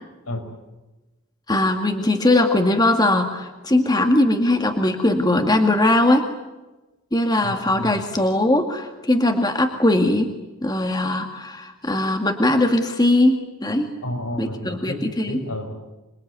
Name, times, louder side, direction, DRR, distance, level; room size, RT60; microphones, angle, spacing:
voice 1, 1.5-6.3 7.1-10.3 10.6-13.9 14.4-15.4, left 1 dB, 20° left, 5 dB, 2.0 m, -20 dB
voice 2, 7.4-8.0 14.0-15.7, left 1 dB, 80° left, 4 dB, 5.7 m, -31 dB
27.0 x 22.5 x 9.6 m, 1.1 s
head